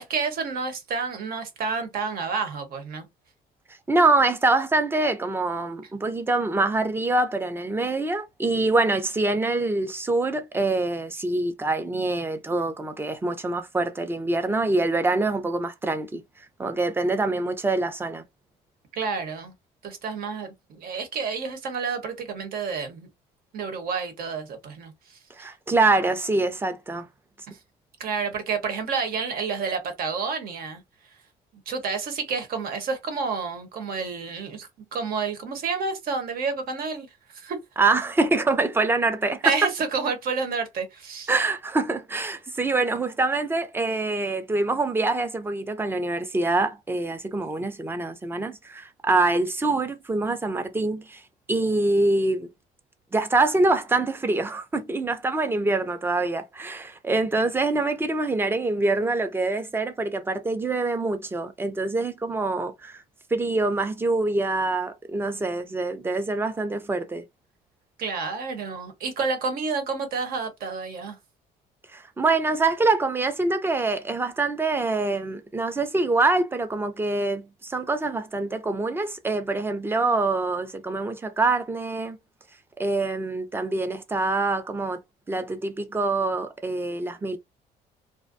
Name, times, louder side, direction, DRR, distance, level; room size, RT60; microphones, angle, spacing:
voice 1, 0.0-3.1 18.9-19.5 19.8-23.1 23.5-25.2 27.5-27.6 28.0-30.8 31.7-37.1 37.3-37.6 39.4-41.3 68.0-71.2, right 5 dB, 60° right, 0.9 m, -29 dB
voice 2, 3.9-16.2 16.6-18.2 25.4-27.1 37.8-39.5 41.3-51.2 51.5-52.5 53.1-63.0 63.3-67.2 71.9-82.2 82.8-85.0 85.3-87.4, right 3 dB, 15° right, 0.5 m, -25 dB
2.5 x 2.1 x 2.5 m
cardioid pair, 110°, 17 cm